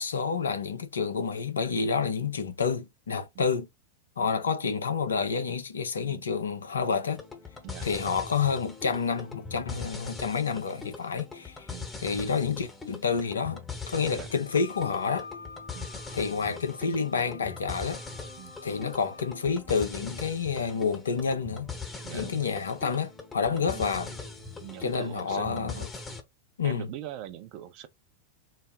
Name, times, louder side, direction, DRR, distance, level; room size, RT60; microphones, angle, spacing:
voice 1, 0.0-3.7 4.2-7.2 7.8-11.7 12.0-13.6 13.9-15.3 16.1-18.0 18.6-21.7 22.1-24.1 24.8-25.9 26.6-26.9, left 5 dB, 70° left, 0.7 m, -29 dB
sound 1, 7.1-26.2, left 4 dB, 15° left, 0.9 m, -41 dB
Wind instrument woodwind instrument, 14.4-19.4, left 4 dB, 90° right, 0.6 m, -47 dB
voice 2, 22.0-22.5 23.5-23.8 24.6-25.9 26.6-27.9, right 12 dB, 45° right, 0.7 m, -42 dB
4.1 x 2.0 x 3.7 m
figure-of-eight pair, 90°, 0 cm